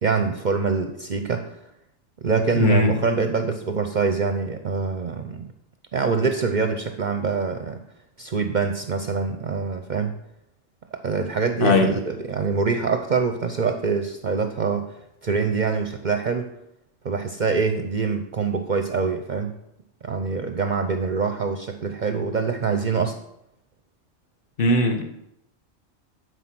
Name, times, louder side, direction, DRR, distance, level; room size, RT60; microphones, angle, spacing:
voice 1, 0.0-1.6 2.2-5.5 5.9-7.8 8.2-10.2 11.0-14.9 15.2-16.5 17.0-19.6 20.0-23.2, right 5 dB, 50° right, 7 dB, 0.7 m, -25 dB
voice 2, 2.6-2.9 11.6-11.9 24.6-25.0, left 2 dB, 50° left, 4 dB, 1.5 m, -18 dB
12.0 x 4.7 x 5.9 m, 0.80 s
omnidirectional pair, 1.2 m